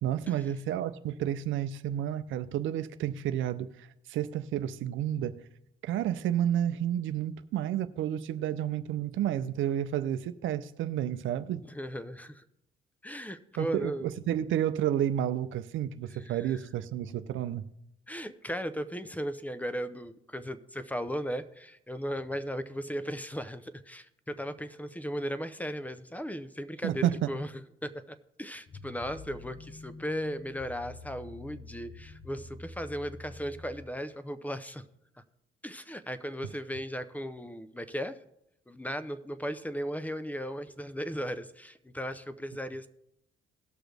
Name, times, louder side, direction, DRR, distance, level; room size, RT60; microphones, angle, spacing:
voice 1, 0.0-5.4 5.8-11.6 13.6-17.6 26.8-27.3, right 11 dB, 75° right, 0.6 m, -31 dB
voice 2, 11.7-12.4 13.0-14.1 16.1-16.6 18.1-27.5 27.8-34.8 35.6-38.2 38.7-42.9, equal, 10° left, 0.6 m, -36 dB
sound 1, 28.7-33.8, left 2 dB, 50° left, 1.2 m, -47 dB
18.0 x 6.1 x 3.4 m
cardioid pair, 90°, 20 cm